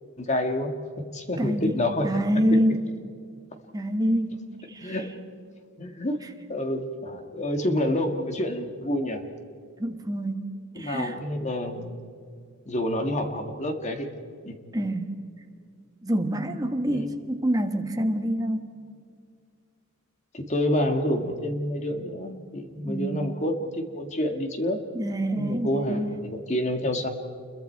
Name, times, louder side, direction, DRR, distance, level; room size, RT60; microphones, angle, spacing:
voice 1, 0.2-0.7 1.1-2.2 4.8-5.2 5.8-6.2 6.5-9.2 10.8-12.1 12.7-14.1 14.4-14.6 16.9-17.1 20.3-24.8 25.4-27.1, left 1 dB, 30° left, 5 dB, 1.9 m, -28 dB
voice 2, 1.4-1.7 2.0-2.9 3.7-4.4 4.7-5.0 9.8-10.5 10.8-11.2 14.7-15.1 16.0-18.7 22.8-23.2 24.9-26.1, equal, 15° right, 5 dB, 1.4 m, -26 dB
28.5 x 22.5 x 4.6 m, 2.2 s
head